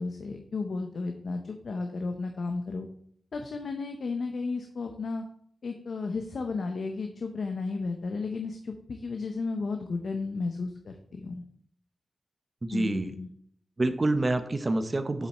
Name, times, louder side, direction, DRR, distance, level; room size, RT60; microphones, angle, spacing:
voice 1, 0.0-2.9 3.3-5.2 5.6-11.4 12.7-13.3, left 3 dB, 60° left, 5 dB, 0.8 m, -33 dB
voice 2, 12.6-13.1 13.8-15.3, right 2 dB, 30° right, 9 dB, 0.8 m, -27 dB
7.3 x 7.0 x 4.3 m, 0.65 s
wide cardioid pair, 135°, 0 cm